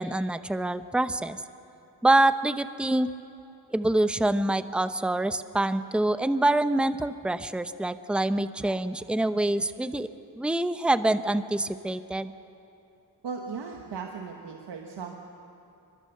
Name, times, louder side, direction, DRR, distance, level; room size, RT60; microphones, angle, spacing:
voice 1, 0.0-1.4 2.0-3.1 3.7-10.1 10.4-12.3, right 1 dB, ahead, 12 dB, 0.8 m, -25 dB
voice 2, 13.2-15.2, right 5 dB, 90° right, 2 dB, 1.4 m, -37 dB
23.5 x 20.5 x 6.8 m, 2.8 s
cardioid pair, 55°, 41 cm